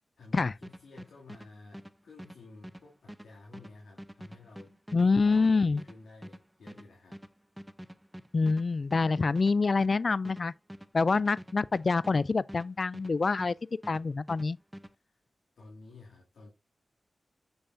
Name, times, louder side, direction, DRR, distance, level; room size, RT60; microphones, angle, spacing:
voice 1, 0.2-7.2 14.9-15.2 15.6-16.5, left 3 dB, 90° left, 2.5 m, -53 dB
sound 1, 0.6-13.6 13.8-14.9, equal, 10° right, 0.7 m, -47 dB
voice 2, 4.9-5.8 8.3-10.5 10.9-13.5 13.9-14.6, left 4 dB, 55° left, 0.3 m, -26 dB
7.1 x 6.9 x 2.6 m
cardioid pair, 55°, 0 cm